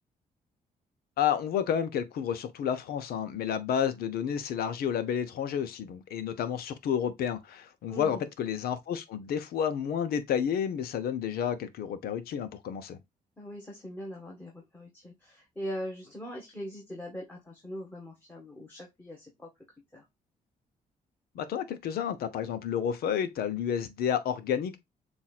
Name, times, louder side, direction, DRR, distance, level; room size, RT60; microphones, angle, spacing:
voice 1, 1.2-13.0 21.3-24.8, left 8 dB, 85° left, 0.8 m, -30 dB
voice 2, 7.9-8.3 13.4-19.5 19.9-20.0, equal, 15° left, 1.5 m, -41 dB
7.2 x 2.6 x 2.4 m
cardioid pair, 95°, 15 cm